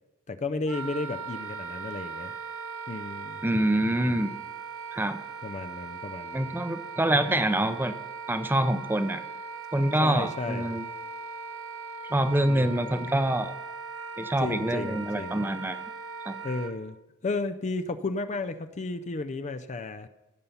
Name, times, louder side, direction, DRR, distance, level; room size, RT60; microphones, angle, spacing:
voice 1, 0.3-2.3 2.9-3.4 5.4-6.5 10.0-10.7 12.4-12.8 14.4-15.4 16.4-17.0 17.2-20.1, left 3 dB, 35° left, 10 dB, 0.5 m, -33 dB
Wind instrument woodwind instrument, 0.7-16.7, right 5 dB, 70° right, 1.1 m, -39 dB
voice 2, 3.4-4.3 4.9-5.2 6.3-7.9 8.3-9.2 9.7-10.9 12.1-13.5 14.2-15.8 16.3-16.4, right 1 dB, 10° right, 10 dB, 0.6 m, -26 dB
16.0 x 5.6 x 7.0 m, 1.0 s
head